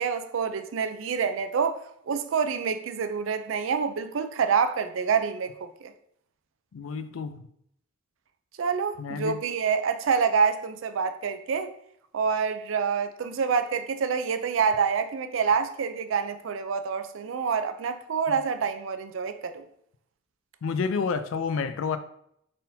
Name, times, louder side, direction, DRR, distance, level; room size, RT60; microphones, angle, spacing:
voice 1, 0.0-5.9 8.6-11.7 12.1-19.6, right 6 dB, 75° right, 0.4 m, -27 dB
voice 2, 6.7-7.4 9.0-9.4 18.3-18.4 20.6-22.0, left 5 dB, 80° left, 0.4 m, -29 dB
4.3 x 3.7 x 2.7 m
head